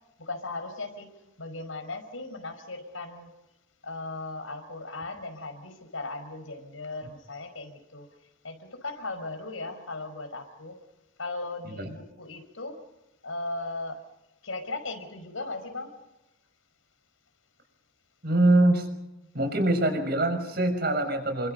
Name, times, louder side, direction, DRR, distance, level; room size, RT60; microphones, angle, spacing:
voice 1, 0.2-1.1 1.4-3.3 3.8-8.1 8.4-10.8 11.2-12.8 13.2-14.0 14.4-16.0, left 2 dB, 85° left, 7 dB, 5.3 m, -37 dB
voice 2, 18.2-18.9 19.3-21.5, right 1 dB, 50° right, 7 dB, 6.2 m, -24 dB
30.0 x 24.5 x 5.5 m, 0.97 s
head